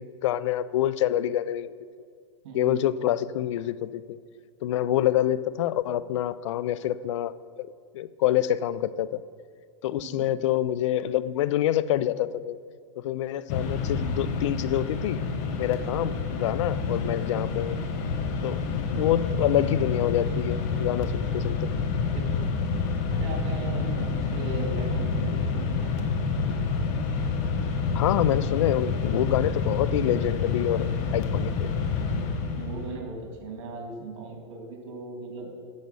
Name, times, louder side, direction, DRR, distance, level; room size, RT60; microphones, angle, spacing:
voice 1, 0.0-1.7 2.5-4.2 4.6-7.7 7.9-9.2 9.8-12.6 13.0-15.2 15.6-17.8 18.4-21.7 27.9-30.9 31.1-31.7, left 12 dB, 70° left, 16 dB, 0.5 m, -26 dB
voice 2, 2.4-2.9 10.0-10.3 21.8-22.6 23.1-25.9 32.6-35.5, right 3 dB, 65° right, 0 dB, 2.9 m, -38 dB
Mechanisms, 13.5-32.9, left 4 dB, 50° left, 1.2 m, -28 dB
10.5 x 6.8 x 5.4 m, 2.1 s
hypercardioid pair, 130°, 16 cm